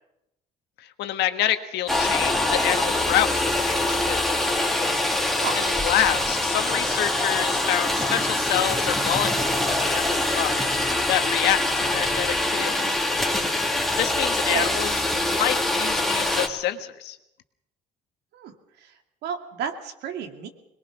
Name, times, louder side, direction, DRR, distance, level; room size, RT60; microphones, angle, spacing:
voice 1, 0.8-4.2 5.5-13.0 14.0-14.9 15.2-17.2, left 12 dB, 80° left, 8 dB, 1.6 m, -27 dB
sound 1, 1.9-16.5, left 1 dB, ahead, 2.7 m, -24 dB
voice 2, 5.3-5.6 14.5-14.7 18.3-18.9 19.2-20.5, right 7 dB, 75° right, 5 dB, 2.5 m, -32 dB
22.5 x 21.0 x 6.0 m, 0.85 s
cardioid pair, 110°, 17 cm